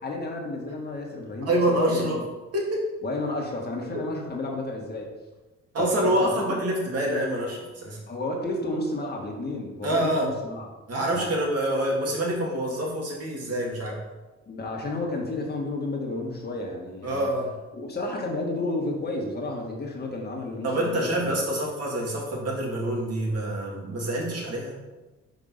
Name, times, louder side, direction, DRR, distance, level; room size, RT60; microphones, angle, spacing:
voice 1, 0.0-1.5 1.9-2.2 3.0-5.1 5.8-6.4 8.1-10.7 11.1-11.4 14.5-17.3 17.7-21.3, left 2 dB, 35° left, 0 dB, 1.7 m, -31 dB
voice 2, 1.4-2.2 2.5-2.8 3.9-4.0 5.7-8.0 9.8-10.3 10.9-14.0 17.0-17.5 20.6-24.7, right 1 dB, 55° right, -2 dB, 2.4 m, -26 dB
5.2 x 4.4 x 5.7 m, 1.1 s
cardioid pair, 90°, 30 cm